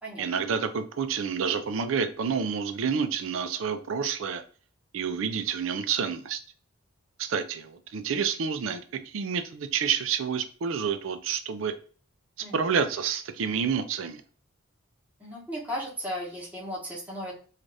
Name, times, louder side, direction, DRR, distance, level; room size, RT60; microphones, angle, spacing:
voice 1, 0.2-4.4 4.9-6.4 7.2-11.7 12.5-14.2, right 6 dB, 70° right, 0.4 m, -29 dB
voice 2, 15.2-17.3, equal, 5° right, 1.0 m, -35 dB
2.6 x 2.4 x 3.2 m
head